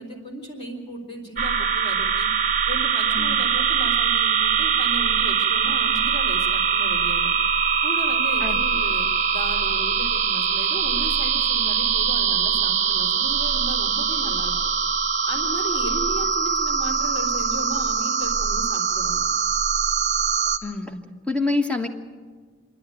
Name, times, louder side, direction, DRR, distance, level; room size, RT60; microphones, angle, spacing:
voice 1, 0.0-2.3 2.7-7.3 7.8-14.6 15.2-19.2, equal, 35° left, -5 dB, 3.2 m, -36 dB
sound 1, 1.4-20.6, right 6 dB, 40° right, 1.0 m, -22 dB
voice 2, 20.6-21.9, left 3 dB, 5° left, 4 dB, 1.3 m, -26 dB
27.5 x 11.0 x 9.2 m, 1.5 s
head